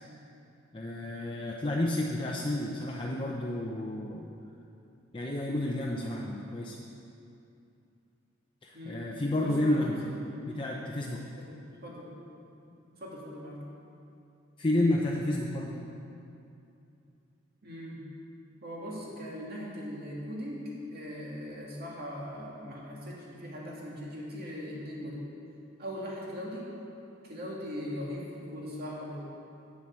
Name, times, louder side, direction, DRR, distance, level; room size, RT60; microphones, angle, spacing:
voice 1, 0.7-4.3 5.1-6.8 8.6-10.0 10.5-11.2 14.6-15.8, left 1 dB, 25° left, -2 dB, 0.6 m, -30 dB
voice 2, 8.7-9.0 9.3-10.2 11.4-11.5 11.8-12.2 12.6-13.7 17.6-18.0 18.6-25.2 25.8-26.7 27.2-29.2, equal, 50° right, -5 dB, 2.3 m, -40 dB
8.5 x 7.5 x 7.4 m, 2.6 s
head